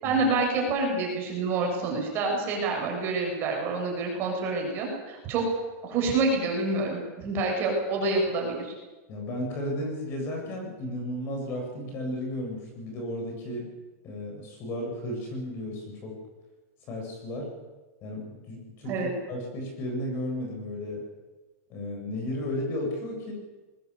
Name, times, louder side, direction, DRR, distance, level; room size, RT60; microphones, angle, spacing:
voice 1, 0.0-5.4 5.8-8.7 18.8-19.1, right 3 dB, 30° right, 0 dB, 7.2 m, -27 dB
voice 2, 9.1-13.7 14.0-16.1 16.9-17.5 18.0-21.0 21.7-23.3, left 1 dB, 30° left, 1 dB, 7.9 m, -34 dB
21.0 x 20.5 x 8.5 m, 1.2 s
supercardioid pair, 170°, 8 cm